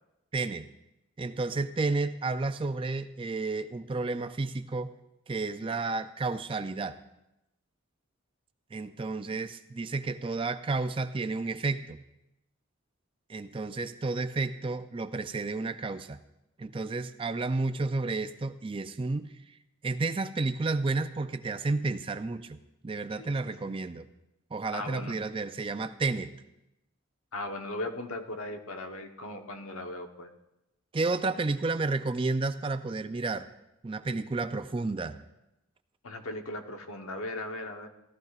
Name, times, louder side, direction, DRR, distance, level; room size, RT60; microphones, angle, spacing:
voice 1, 0.3-0.6 1.2-4.9 5.3-7.0 8.7-12.0 13.3-16.2 16.6-19.3 19.8-22.6 22.8-24.1 24.5-26.3 30.9-33.5 33.8-35.2, right 3 dB, 25° right, 10 dB, 0.3 m, -31 dB
voice 2, 23.1-23.7 24.7-25.2 27.3-30.3 36.0-37.9, left 2 dB, 80° left, 4 dB, 1.1 m, -38 dB
17.5 x 13.0 x 2.4 m, 0.91 s
head